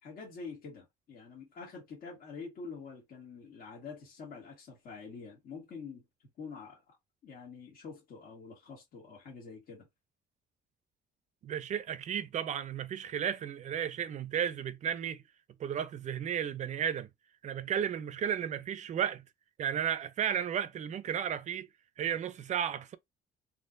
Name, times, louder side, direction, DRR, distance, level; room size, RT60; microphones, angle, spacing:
voice 1, 0.0-6.0 6.4-7.0 7.2-9.9, left 5 dB, 60° left, 1.6 m, -46 dB
voice 2, 11.4-15.2 15.6-17.1 17.4-19.2 19.6-21.7 22.0-23.0, right 9 dB, 45° right, 0.5 m, -33 dB
3.7 x 3.0 x 2.6 m
cardioid pair, 110°, 17 cm